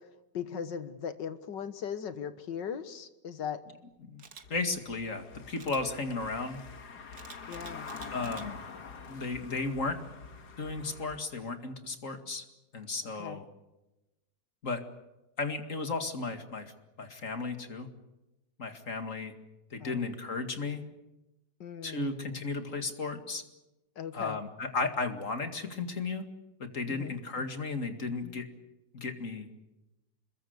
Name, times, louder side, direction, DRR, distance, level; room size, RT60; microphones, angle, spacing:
voice 1, 0.3-3.6 7.5-7.9 13.2-13.4 19.8-20.1 21.6-22.4 24.0-24.4 26.9-27.5, left 7 dB, 80° left, 11 dB, 2.0 m, -39 dB
Camera, 4.2-4.4 5.6-5.8 7.1-8.5 9.0-9.2, right 6 dB, 60° right, 2.1 m, -49 dB
Car passing by / Engine, 4.4-11.2, left 5 dB, 60° left, 2.3 m, -46 dB
voice 2, 4.5-6.6 8.1-8.6 9.1-10.0 10.6-12.4 12.7-13.5 14.6-14.8 15.4-16.7 17.0-17.9 18.6-19.3 19.7-20.8 21.8-23.4 24.1-26.3 26.6-28.5 28.9-29.5, left 3 dB, 45° left, 7 dB, 2.4 m, -34 dB
26.0 x 21.5 x 8.0 m, 0.99 s
omnidirectional pair, 1.9 m